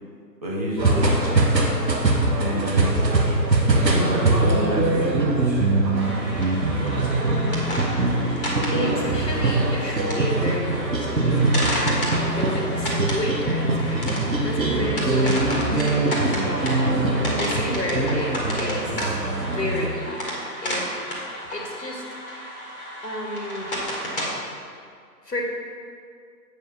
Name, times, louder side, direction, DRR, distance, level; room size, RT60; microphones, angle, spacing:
voice 1, 0.4-1.3 2.3-2.9 3.7-5.2, right 1 dB, 25° right, -7 dB, 1.2 m, -27 dB
sound 1, 0.8-19.9, right 2 dB, 80° right, 1.3 m, -22 dB
sound 2, 5.9-24.3, equal, 30° left, 1.5 m, -32 dB
voice 2, 8.6-16.0 16.4-16.9 17.2-19.1 19.4-20.9 21.5-22.6 23.0-23.8 25.2-25.4, left 1 dB, 80° left, -2 dB, 1.6 m, -31 dB
7.9 x 4.3 x 5.7 m, 2.2 s
figure-of-eight pair, 150°, 50 cm